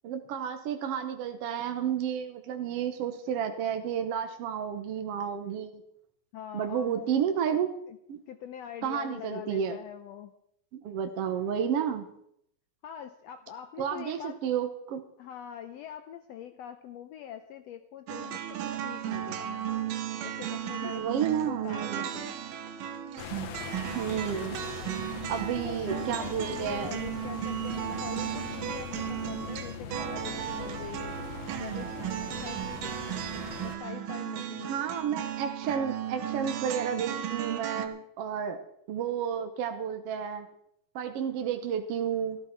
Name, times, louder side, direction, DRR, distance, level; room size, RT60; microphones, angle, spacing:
voice 1, 0.0-5.7 6.5-7.7 8.1-8.2 8.8-9.8 10.7-12.1 13.8-15.0 20.8-22.0 23.9-24.6 25.3-26.9 34.7-38.6 38.9-40.5 40.9-42.4, right 8 dB, 65° right, 6 dB, 1.6 m, -31 dB
voice 2, 6.3-7.1 7.5-7.6 7.9-8.0 8.3-10.3 12.8-14.4 15.2-19.7 20.2-22.3 25.5-31.2 31.6-33.0 33.6-34.8, left 9 dB, 80° left, 8 dB, 1.5 m, -44 dB
sound 1, 18.1-37.9, right 11 dB, 85° right, 2.7 m, -35 dB
sound 2, 23.2-33.8, left 6 dB, 60° left, 1.8 m, -41 dB
14.0 x 13.5 x 4.5 m, 0.73 s
omnidirectional pair, 3.8 m